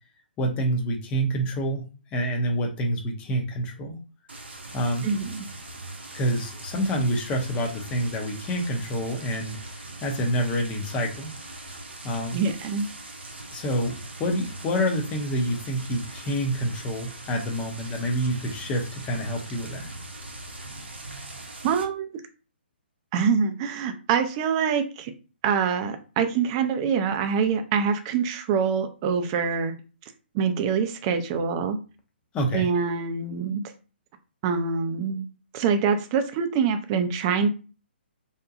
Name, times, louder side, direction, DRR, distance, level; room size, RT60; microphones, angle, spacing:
voice 1, 0.4-4.0 4.7-5.1 6.1-11.3 12.0-12.5 13.5-19.9 32.3-32.7, equal, 20° left, 2 dB, 0.6 m, -27 dB
sound 1, 4.3-21.8, right 2 dB, 75° right, 0.6 m, -41 dB
voice 2, 5.0-5.5 12.3-12.9 21.6-22.1 23.1-25.1 25.4-29.7 30.3-31.8 32.5-33.6 34.4-35.2 35.5-37.5, right 6 dB, 30° right, 7 dB, 0.4 m, -25 dB
2.7 x 2.2 x 2.5 m, 0.34 s
figure-of-eight pair, 130°, 6 cm